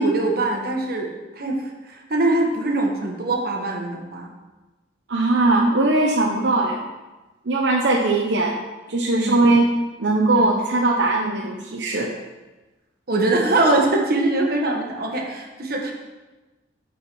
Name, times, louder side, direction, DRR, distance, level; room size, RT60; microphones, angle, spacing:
voice 1, 0.0-4.3 9.2-9.4 10.3-10.5 13.1-15.9, right 2 dB, 55° right, 1 dB, 1.3 m, -22 dB
voice 2, 5.1-6.9 7.5-8.6 8.9-9.7 10.0-12.1, right 2 dB, 80° right, 0 dB, 0.9 m, -19 dB
11.0 x 4.6 x 4.6 m, 1.1 s
head